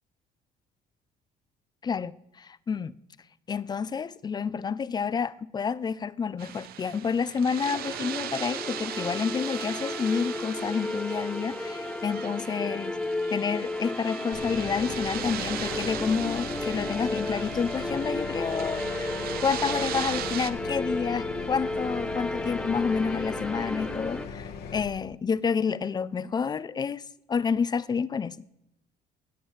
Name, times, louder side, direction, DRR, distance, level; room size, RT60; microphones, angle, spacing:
voice 1, 1.8-2.9 3.5-13.0 13.3-19.1 19.4-28.4, left 6 dB, 25° left, 0.3 m, -29 dB
sound 1, 6.4-20.5, right 11 dB, 65° right, 0.6 m, -38 dB
sound 2, 7.5-24.3, left 2 dB, 5° left, 0.7 m, -33 dB
sound 3, 14.3-24.9, left 5 dB, 70° left, 1.3 m, -39 dB
16.5 x 7.3 x 3.2 m
cardioid pair, 110°, 17 cm